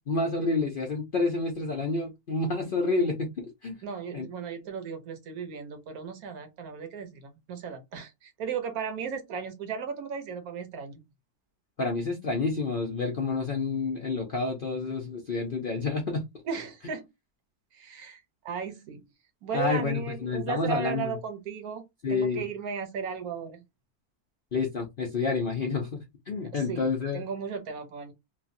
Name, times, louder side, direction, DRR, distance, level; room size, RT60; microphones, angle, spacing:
voice 1, 0.1-3.8 4.1-4.2 11.8-16.2 19.5-21.2 22.0-22.4 24.5-26.0 26.3-27.2, left 3 dB, 60° left, 0.5 m, -29 dB
voice 2, 3.8-11.0 16.4-17.1 17.7-19.0 19.4-21.8 22.1-23.6 26.5-26.9 27.1-28.1, right 6 dB, 70° right, 1.2 m, -36 dB
3.2 x 2.3 x 2.5 m
omnidirectional pair, 1.7 m